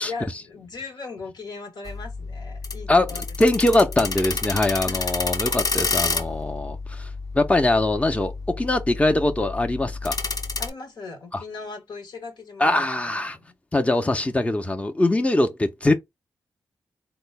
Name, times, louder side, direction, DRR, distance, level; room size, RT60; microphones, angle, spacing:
voice 1, 0.0-3.3 4.9-5.4 10.6-12.9 13.3-13.5, left 4 dB, 70° left, 1.0 m, -38 dB
sound 1, 1.9-10.7, left 4 dB, 50° left, 0.8 m, -30 dB
voice 2, 3.4-7.1 7.3-10.2 11.3-11.4 12.6-13.4 13.7-15.9, left 2 dB, 15° left, 0.6 m, -22 dB
3.7 x 2.0 x 3.3 m
supercardioid pair, 40°, 8 cm